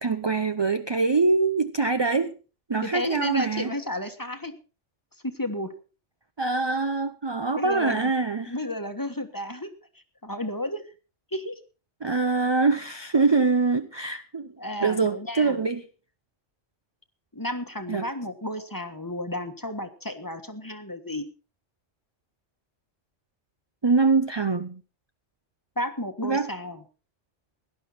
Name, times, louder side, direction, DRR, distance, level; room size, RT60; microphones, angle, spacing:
voice 1, 0.0-2.4 2.7-3.7 6.4-8.5 12.0-14.5 14.8-15.9 17.9-18.1 23.8-24.8 26.2-26.5, right 4 dB, 30° right, 0.6 m, -24 dB
voice 2, 2.8-4.5 5.2-5.7 7.6-8.1 8.5-9.7 10.2-10.8 11.3-11.6 14.6-15.6 17.3-21.3 25.8-26.8, left 1 dB, 15° left, 1.3 m, -32 dB
18.0 x 11.0 x 4.2 m
omnidirectional pair, 1.2 m